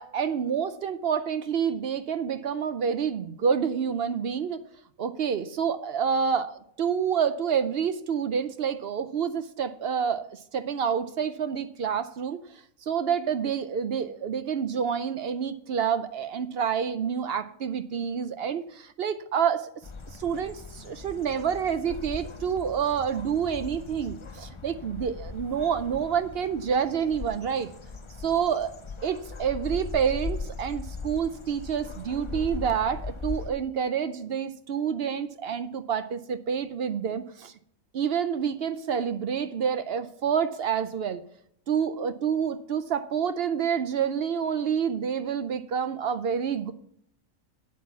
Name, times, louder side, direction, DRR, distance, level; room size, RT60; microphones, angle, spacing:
voice 1, 0.0-4.6 5.0-6.5 6.8-12.4 12.8-19.7 20.2-27.7 28.2-28.7 29.0-37.5 37.9-41.2 41.7-46.7, right 7 dB, 60° right, 11 dB, 0.7 m, -28 dB
sound 1, 19.8-33.5, left 4 dB, 35° left, 0.5 m, -39 dB
8.5 x 8.2 x 5.8 m, 0.68 s
omnidirectional pair, 1.4 m